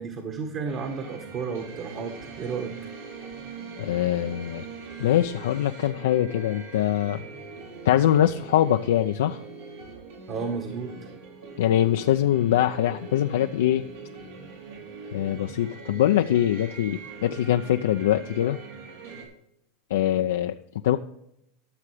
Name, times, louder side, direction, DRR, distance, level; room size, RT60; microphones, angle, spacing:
voice 1, 0.0-2.7 10.3-11.0, right 5 dB, 45° right, 4 dB, 1.6 m, -32 dB
sound 1, 0.6-19.2, right 4 dB, 85° right, 4.0 m, -42 dB
voice 2, 3.8-4.6 5.0-7.3 7.8-9.4 11.6-13.9 15.1-18.6 19.9-20.5 20.8-21.0, left 11 dB, 85° left, 6 dB, 0.5 m, -23 dB
13.5 x 6.7 x 4.9 m, 0.76 s
supercardioid pair, 125°, 0 cm